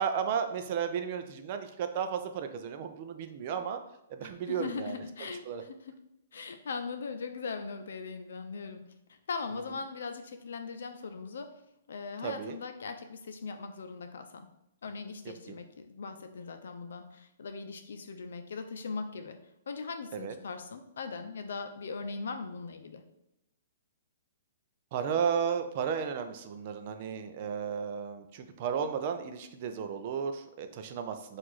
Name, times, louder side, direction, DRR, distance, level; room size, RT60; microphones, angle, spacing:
voice 1, 0.0-3.8 4.1-5.0 5.5-5.6 12.2-12.6 15.5-15.6 20.1-20.3 24.9-31.4, right 7 dB, 40° right, 7 dB, 0.4 m, -33 dB
voice 2, 4.2-5.7 6.3-8.8 9.1-11.5 11.9-14.5 14.8-19.4 19.7-23.0, left 4 dB, 80° left, 8 dB, 0.5 m, -40 dB
4.6 x 2.5 x 4.0 m, 0.86 s
hypercardioid pair, 165°, 0 cm